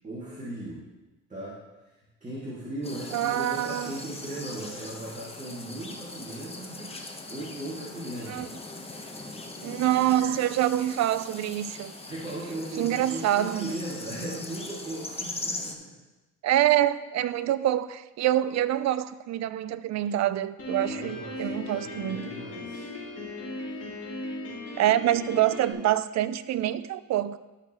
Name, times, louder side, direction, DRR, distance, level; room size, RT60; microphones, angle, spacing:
voice 1, 0.0-0.8 1.3-1.6 2.2-8.5 12.1-15.9 20.8-22.9 23.6-23.8, right 1 dB, 25° right, -7 dB, 2.4 m, -38 dB
sound 1, 2.8-15.7, left 2 dB, 20° left, 1.1 m, -40 dB
voice 2, 3.1-4.0 8.3-8.5 9.6-11.9 12.8-13.7 16.4-22.3 24.8-27.4, right 12 dB, 65° right, 14 dB, 0.5 m, -26 dB
Piano, 20.6-25.7, left 1 dB, 50° left, 3.3 m, -37 dB
12.5 x 6.5 x 3.1 m, 1.1 s
cardioid pair, 90°, 30 cm